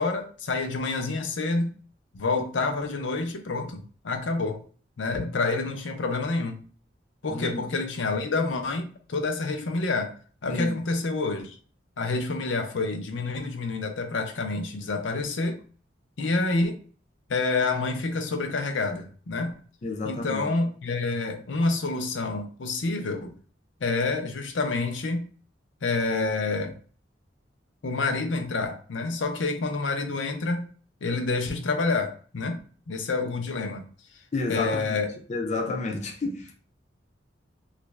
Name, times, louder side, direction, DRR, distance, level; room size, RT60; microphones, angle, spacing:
voice 1, 0.0-1.8 2.1-4.6 5.0-6.6 7.2-10.1 10.4-11.6 12.0-15.6 16.2-16.8 17.3-19.5 20.0-23.3 23.8-25.3 25.8-26.7 27.8-30.6 31.0-32.6 32.9-33.9 34.5-35.1, left 3 dB, 85° left, 0.6 m, -28 dB
voice 2, 7.3-7.7 10.5-10.8 19.8-20.5 34.3-36.5, left 3 dB, 40° left, 0.5 m, -31 dB
3.0 x 2.5 x 3.2 m
head